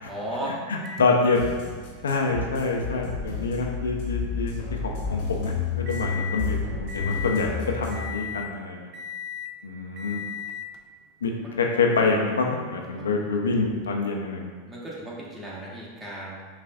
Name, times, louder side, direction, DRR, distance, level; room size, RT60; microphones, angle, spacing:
voice 1, 0.1-0.6 6.0-6.3 7.0-7.3 11.4-11.5 12.9-13.4 14.7-16.5, right 1 dB, 15° right, -6 dB, 1.2 m, -36 dB
voice 2, 0.7-1.4 2.0-8.9 9.6-10.2 11.2-11.3 11.6-14.5, left 3 dB, 85° left, 0 dB, 0.5 m, -26 dB
Microwave oven, 0.8-6.5 6.9-7.5 7.9-8.5 8.9-9.6 10.0-10.8 11.7-11.8 13.8-13.9, left 7 dB, 45° right, 0.4 m, -39 dB
sound 1, 1.3-8.0, left 5 dB, 60° left, 0.9 m, -31 dB
5.5 x 2.5 x 2.3 m, 1.5 s
hypercardioid pair, 95°, 0 cm